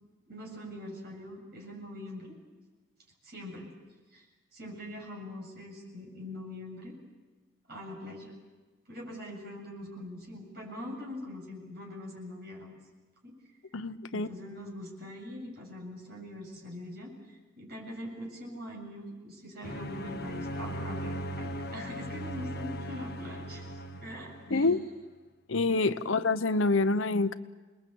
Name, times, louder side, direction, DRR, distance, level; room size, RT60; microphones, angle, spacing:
voice 1, 0.3-2.4 3.2-3.7 4.1-4.2 4.5-7.0 7.7-8.3 8.9-12.7 13.2-13.3 14.1-24.7, left 1 dB, 50° right, -1 dB, 7.9 m, -43 dB
voice 2, 13.7-14.3 24.5-24.8 25.5-27.4, left 3 dB, 70° left, 12 dB, 0.9 m, -26 dB
sound 1, 19.6-24.7, equal, 50° left, 1.5 m, -38 dB
28.5 x 21.0 x 8.6 m, 1.3 s
head